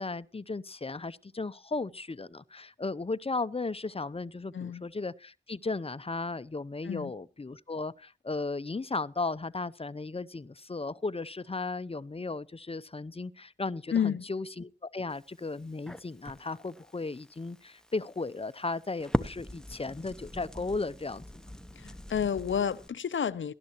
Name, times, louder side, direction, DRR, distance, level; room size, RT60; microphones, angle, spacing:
voice 1, 0.0-21.4, left 3 dB, 30° left, 0.6 m, -35 dB
voice 2, 13.9-14.2 21.8-23.5, left 8 dB, 75° left, 0.6 m, -30 dB
Crackle, 15.1-22.9, equal, 5° left, 0.9 m, -40 dB
19.0 x 12.0 x 2.9 m
wide cardioid pair, 65°, 20 cm